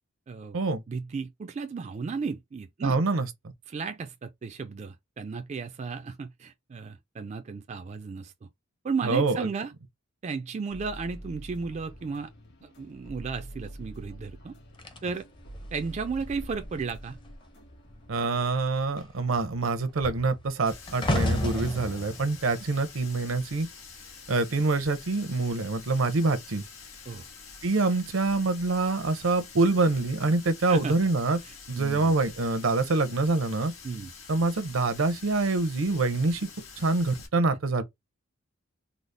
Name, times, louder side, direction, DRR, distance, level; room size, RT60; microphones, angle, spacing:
voice 1, 0.3-0.6 0.9-3.0 3.7-8.3 8.8-9.7 10.2-12.3 12.6-14.6 15.0-15.3 15.7-17.2 27.1-27.2 30.7-30.9 31.4-32.1 33.8-34.1, right 5 dB, 35° right, 0.3 m, -34 dB
voice 2, 2.8-3.3 9.0-9.5 18.1-23.7 24.3-26.6 27.6-31.4 31.7-33.7 34.3-36.5 36.8-37.8, right 3 dB, 75° right, 0.7 m, -25 dB
sound 1, 10.7-18.6, right 1 dB, 60° left, 1.5 m, -46 dB
sound 2, 14.8-17.5 17.8-18.2 18.5-23.8 24.6-24.8, left 1 dB, 25° left, 0.6 m, -34 dB
Water tap faucet, 20.7-37.3, left 5 dB, 75° left, 1.4 m, -47 dB
3.9 x 2.0 x 3.2 m
head